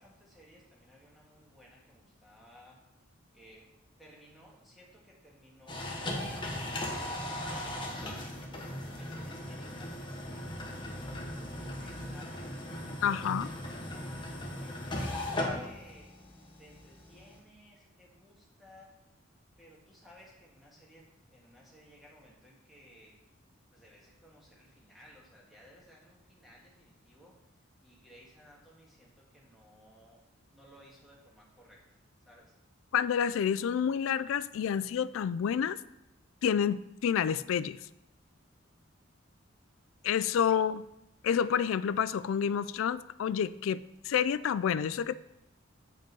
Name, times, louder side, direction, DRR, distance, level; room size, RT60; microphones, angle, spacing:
voice 1, 0.0-2.8 3.3-3.7 4.0-6.5 7.0-8.1 8.5-10.0 10.7-12.5 13.0-18.9 19.6-23.1 23.7-27.3 27.8-30.2 30.5-31.8 32.2-32.5 40.3-40.6, equal, ahead, -4 dB, 1.7 m, -58 dB
sound 1, 5.7-17.4, left 1 dB, 25° left, 1.2 m, -38 dB
voice 2, 13.0-13.5 32.9-35.8 36.4-37.8 40.0-40.9 41.2-45.2, left 8 dB, 75° left, 16 dB, 0.3 m, -29 dB
7.8 x 5.2 x 5.3 m, 0.88 s
head